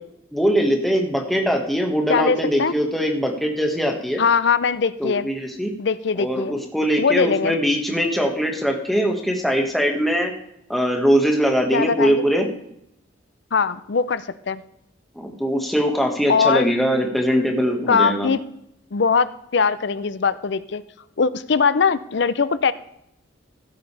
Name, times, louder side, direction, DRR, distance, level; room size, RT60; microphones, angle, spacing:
voice 1, 0.3-4.2 5.0-5.7 6.2-10.3 10.7-12.5 15.1-18.3, equal, ahead, 2 dB, 1.6 m, -21 dB
voice 2, 2.1-2.7 4.2-5.3 5.8-6.5 7.0-7.6 11.7-12.2 13.5-14.6 16.3-16.7 17.9-18.4 18.9-20.8 21.2-22.7, left 5 dB, 60° left, 15 dB, 0.5 m, -21 dB
15.5 x 8.2 x 3.3 m, 0.76 s
head